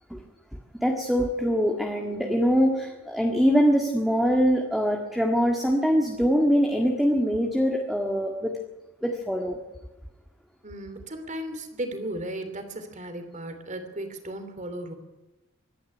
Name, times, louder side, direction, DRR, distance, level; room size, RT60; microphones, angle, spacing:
voice 1, 0.8-8.5 9.0-9.6, equal, ahead, 1 dB, 1.7 m, -23 dB
voice 2, 10.6-14.9, right 1 dB, 35° right, 8 dB, 2.9 m, -35 dB
24.0 x 11.0 x 9.9 m, 1.1 s
head